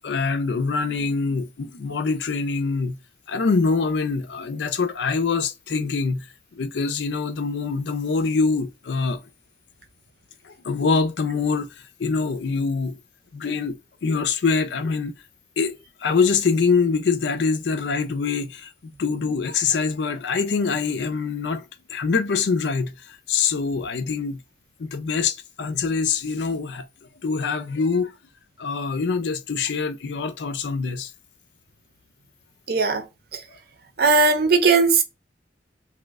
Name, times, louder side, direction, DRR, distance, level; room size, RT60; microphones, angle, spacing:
voice 1, 0.0-3.0 3.3-6.3 6.6-9.2 10.4-13.0 13.3-15.1 15.6-18.7 19.0-24.4 24.8-26.9 27.2-28.1 28.6-31.1, left 4 dB, 75° left, 0.5 m, -24 dB
voice 2, 32.7-33.0 34.0-35.0, right 4 dB, 60° right, 0.6 m, -18 dB
3.0 x 2.1 x 3.4 m
head